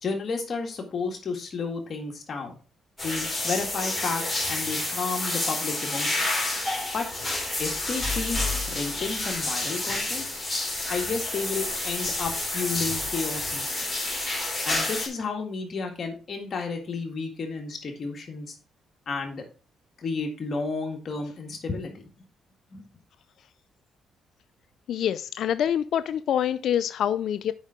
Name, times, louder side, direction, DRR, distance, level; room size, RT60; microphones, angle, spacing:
voice 1, 0.0-2.6 3.0-6.3 6.9-7.1 7.6-10.2 10.9-13.9 14.7-18.5 19.1-19.4 20.0-22.1 22.7-22.8, left 4 dB, 50° left, 1.9 m, -32 dB
sound 1, 3.0-15.1, left 2 dB, 5° left, 3.6 m, -29 dB
voice 2, 24.9-27.5, left 9 dB, 70° left, 0.4 m, -26 dB
7.1 x 5.5 x 5.0 m
cardioid pair, 90°, 0 cm